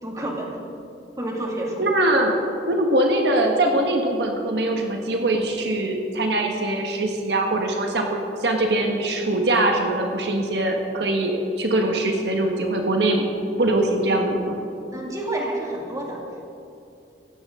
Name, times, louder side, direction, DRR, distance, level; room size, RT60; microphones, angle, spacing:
voice 1, 0.0-0.6 1.2-1.9 14.9-16.2, right 1 dB, 20° right, -2 dB, 2.3 m, -29 dB
voice 2, 1.8-13.2 13.6-14.6, right 1 dB, 70° right, 2 dB, 1.5 m, -22 dB
17.0 x 14.5 x 3.8 m, 2.7 s
head